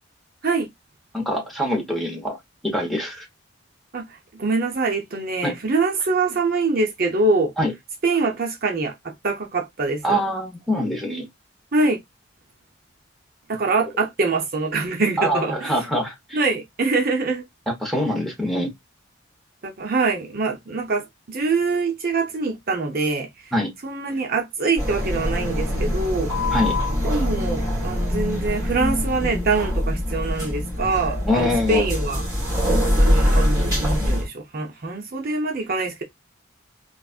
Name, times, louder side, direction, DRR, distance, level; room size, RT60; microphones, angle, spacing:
voice 1, 1.1-2.4 2.6-3.3 5.4-5.5 7.6-7.7 10.0-11.3 15.2-16.4 17.7-18.7 23.5-23.7 26.5-26.8 31.2-31.8, equal, ahead, 1.0 m, -24 dB
voice 2, 3.9-7.5 8.0-10.2 11.7-12.0 13.5-15.8 16.3-17.4 19.6-23.5 23.8-26.3 27.0-32.2 32.8-36.0, right 3 dB, 45° right, 0.7 m, -24 dB
sound 1, 24.8-34.3, left 1 dB, 15° right, 2.5 m, -23 dB
4.0 x 2.4 x 2.4 m
head